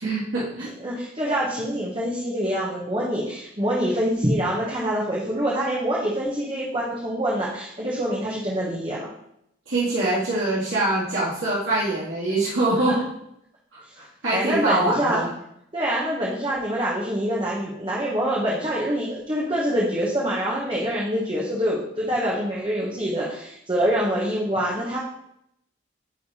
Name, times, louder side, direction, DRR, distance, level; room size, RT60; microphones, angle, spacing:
voice 1, 0.0-0.7 9.7-13.0 13.7-15.3, right 2 dB, 90° right, -9 dB, 2.2 m, -24 dB
voice 2, 0.8-9.1 14.3-15.2 15.7-25.0, equal, 25° right, -5 dB, 1.1 m, -25 dB
9.4 x 3.5 x 4.2 m, 0.76 s
head